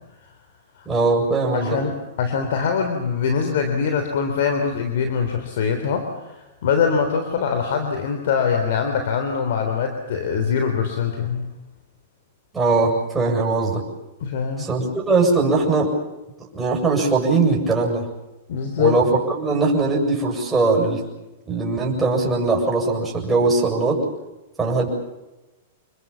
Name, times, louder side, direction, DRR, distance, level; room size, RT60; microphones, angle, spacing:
voice 1, 0.9-1.8 12.5-13.8 14.6-15.9 16.4-18.1 18.8-21.0 21.5-24.0 24.6-24.9, right 3 dB, 10° right, -2 dB, 7.5 m, -20 dB
voice 2, 1.5-11.5 14.2-14.7 18.5-19.0, left 6 dB, 70° left, 6 dB, 3.6 m, -23 dB
28.0 x 21.5 x 7.2 m, 1.0 s
hypercardioid pair, 140°, 0 cm